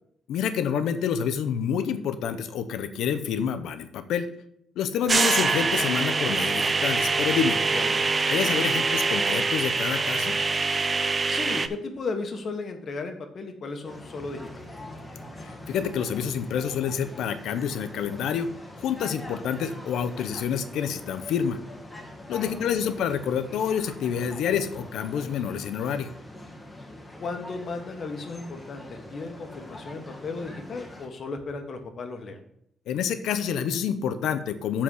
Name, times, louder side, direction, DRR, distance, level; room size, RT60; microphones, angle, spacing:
voice 1, 0.3-4.3 4.8-7.6 8.3-10.4 15.4-18.5 18.8-21.6 22.3-26.1 32.9-34.8, left 8 dB, 85° left, 10 dB, 0.7 m, -28 dB
sound 1, 5.1-11.7, right 4 dB, 25° right, 0.4 m, -24 dB
voice 2, 7.7-8.1 11.3-14.5 22.3-22.9 27.2-32.4, left 3 dB, 45° left, 5 dB, 1.2 m, -35 dB
sound 2, 13.8-31.1, left 1 dB, 10° left, 1.2 m, -43 dB
7.5 x 4.3 x 6.3 m, 0.73 s
cardioid pair, 135°, 0 cm